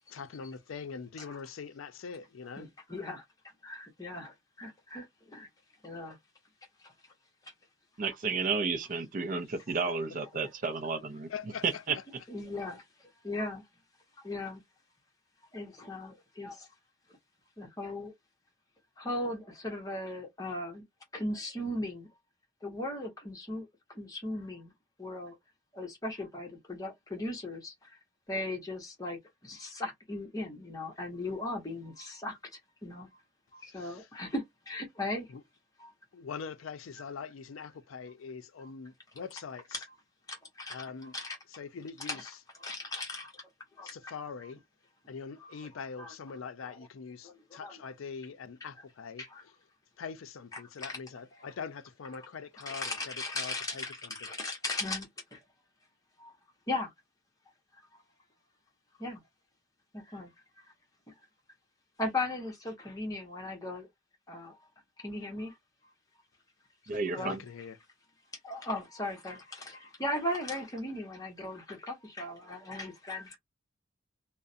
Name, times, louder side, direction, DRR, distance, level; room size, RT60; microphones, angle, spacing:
voice 1, 0.1-2.7 11.3-12.0 33.6-34.1 35.3-35.4 36.1-39.8 40.7-41.2 41.5-42.4 43.8-44.6 45.1-49.5 50.0-54.2 67.2-67.8, left 5 dB, 90° left, 0.4 m, -43 dB
voice 2, 2.6-3.2 3.6-5.5 5.8-6.2 6.8-6.9 12.3-12.8 13.2-13.6 14.2-14.6 15.5-16.7 17.6-18.1 19.0-20.8 21.1-22.1 22.6-23.7 23.9-24.7 25.0-25.4 25.7-27.9 28.3-33.1 33.5-35.3 35.8-35.9 40.3-40.8 41.1-41.4 42.0-42.2 42.6-43.4 43.8-44.1 45.4-45.5 46.0-46.1 47.2-47.7 49.2-49.4 50.8-51.0 52.2-52.3 52.7-55.4 56.2-56.3 56.7-56.9 59.0-59.2 59.9-60.3 62.0-63.9 64.3-64.6 65.0-65.5 67.1-67.3 68.4-73.4, left 2 dB, 20° left, 0.9 m, -37 dB
voice 3, 8.0-11.3 11.6-12.0 66.9-67.4, right 4 dB, 40° right, 0.4 m, -32 dB
2.4 x 2.0 x 2.5 m
head